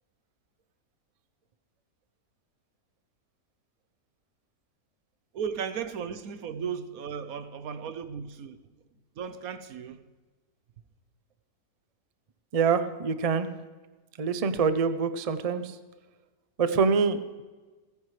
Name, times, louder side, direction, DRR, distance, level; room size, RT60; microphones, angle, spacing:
voice 1, 5.3-8.6 9.2-10.0, right 7 dB, 65° right, 1.2 m, -35 dB
voice 2, 12.5-13.5 14.2-15.7 16.6-17.4, right 5 dB, 45° right, 0.4 m, -25 dB
29.5 x 9.9 x 3.3 m
omnidirectional pair, 1.7 m